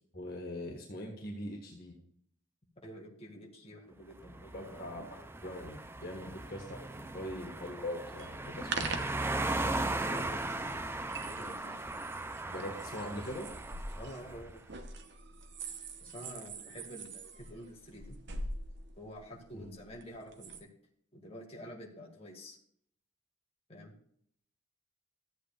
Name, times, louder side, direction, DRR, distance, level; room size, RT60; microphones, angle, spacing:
voice 1, 0.1-2.0 4.5-9.1 12.5-13.5 19.5-19.7, left 1 dB, 45° left, 0 dB, 1.5 m, -42 dB
voice 2, 2.8-4.8 9.5-10.8 11.3-11.9 14.0-14.6 16.0-18.2 19.0-20.5 21.1-22.6 23.7-24.0, equal, 30° left, -1 dB, 1.9 m, -48 dB
sound 1, 4.2-14.5, right 2 dB, 10° right, 0.4 m, -38 dB
sound 2, 8.2-20.6, right 3 dB, 55° right, 0.9 m, -44 dB
14.0 x 8.2 x 2.4 m, 0.66 s
head